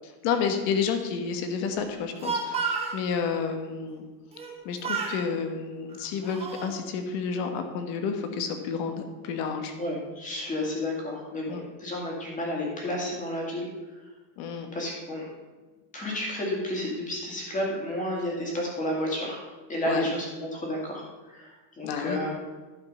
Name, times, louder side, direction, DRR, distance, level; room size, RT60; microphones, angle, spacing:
voice 1, 0.2-4.0 4.6-9.7 11.5-11.6 14.4-14.7 19.8-20.1 21.8-22.2, left 6 dB, 60° left, 6 dB, 1.4 m, -30 dB
Speech, 1.9-3.0 4.3-4.6 4.8-5.2 5.9-6.7, right 5 dB, 15° right, 1.0 m, -31 dB
voice 2, 9.8-13.7 14.7-15.3 15.9-19.4 19.7-20.3 20.5-22.3, left 1 dB, 15° left, -2 dB, 2.2 m, -31 dB
11.5 x 5.4 x 5.6 m, 1.2 s
cardioid pair, 170°, 45 cm